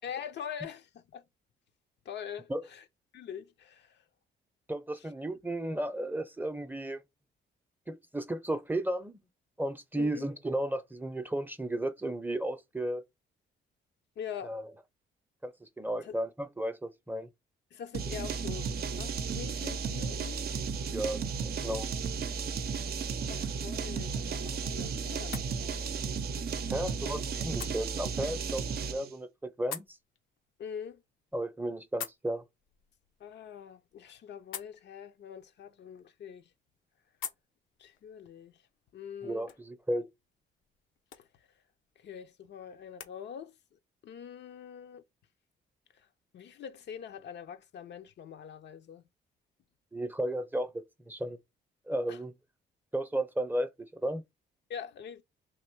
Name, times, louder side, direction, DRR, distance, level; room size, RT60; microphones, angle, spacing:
voice 1, 0.0-1.2 2.0-2.8 3.1-4.0 10.0-10.3 14.2-14.6 16.0-16.2 17.7-20.4 22.7-23.0 23.3-25.9 26.8-27.2 30.6-31.0 33.2-36.5 37.8-38.6 38.9-39.5 41.2-41.3 42.0-43.5 44.0-45.0 46.0-46.1 46.3-49.0 52.1-52.2 54.7-55.2, left 8 dB, 60° left, 0.6 m, -44 dB
voice 2, 4.7-7.0 7.9-9.2 9.6-13.0 14.4-14.7 15.4-17.3 20.9-21.9 26.7-30.0 31.3-32.4 39.2-40.1 49.9-51.4 51.9-52.3 52.9-54.2, right 1 dB, 10° right, 0.6 m, -34 dB
sound 1, 17.9-29.1, right 5 dB, 50° right, 0.6 m, -34 dB
sound 2, 23.7-43.2, left 8 dB, 85° left, 0.9 m, -50 dB
3.5 x 3.0 x 4.5 m
cardioid pair, 90°, 20 cm